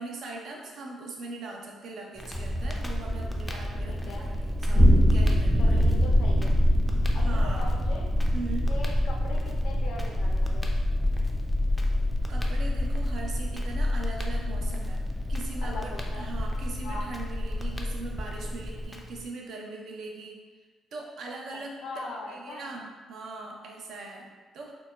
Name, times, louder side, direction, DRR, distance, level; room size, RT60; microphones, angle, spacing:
voice 1, 0.0-6.0 7.2-7.8 8.3-8.7 12.3-20.4 20.9-21.8 22.1-24.7, right 3 dB, 70° right, 0 dB, 0.4 m, -40 dB
Crackle, 2.1-19.3, left 1 dB, 15° left, 0.3 m, -42 dB
sound 1, 2.3-18.9, equal, 40° right, 0.9 m, -26 dB
voice 2, 3.9-4.3 5.6-6.5 7.1-8.1 8.7-10.7 15.6-16.3 16.8-17.1 21.8-22.7, left 3 dB, 80° left, 0 dB, 0.4 m, -40 dB
2.2 x 2.0 x 3.0 m, 1.3 s
cardioid pair, 90°, 0 cm